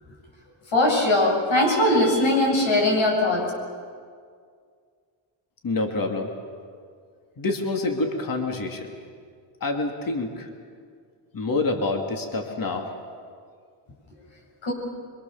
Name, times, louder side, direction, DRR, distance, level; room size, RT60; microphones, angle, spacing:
voice 1, 0.7-3.5 14.6-14.7, left 1 dB, 65° left, -1 dB, 8.0 m, -20 dB
voice 2, 5.6-6.3 7.4-8.9 9.6-10.5 11.3-12.9, left 2 dB, 45° left, 3 dB, 2.6 m, -27 dB
26.5 x 23.5 x 7.2 m, 2.1 s
cardioid pair, 110°, 49 cm